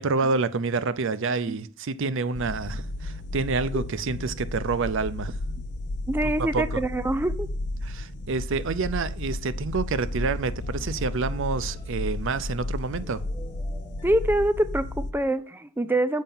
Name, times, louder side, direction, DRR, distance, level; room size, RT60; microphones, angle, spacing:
voice 1, 0.0-5.4 6.2-6.8 7.8-13.2, right 4 dB, 65° right, 0.5 m, -28 dB
sound 1, 2.3-15.1, left 2 dB, 55° left, 0.6 m, -33 dB
voice 2, 6.1-7.5 14.0-16.2, right 1 dB, 10° right, 0.5 m, -25 dB
sound 2, 10.0-12.6 12.9-14.3, left 1 dB, 15° left, 1.4 m, -48 dB
7.3 x 5.6 x 5.5 m
head